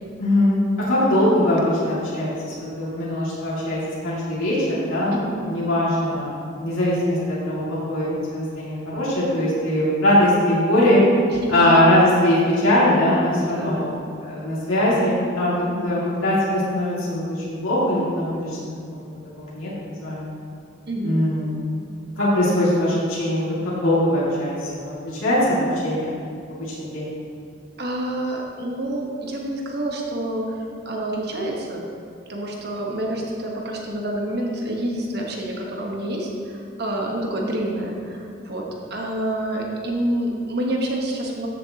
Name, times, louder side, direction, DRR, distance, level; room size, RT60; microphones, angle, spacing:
voice 1, 0.2-11.0 11.5-13.9 14.2-19.0 19.4-20.3 21.0-21.5 22.2-25.6 25.8-26.1 26.6-27.1, left 1 dB, 85° left, -8 dB, 2.4 m, -21 dB
voice 2, 5.1-5.4 11.4-11.5 13.5-13.9 15.7-15.9 20.9-21.2 27.8-31.8 32.3-38.6 38.9-41.5, right 1 dB, 50° right, -1 dB, 1.2 m, -28 dB
13.5 x 6.8 x 2.9 m, 2.4 s
head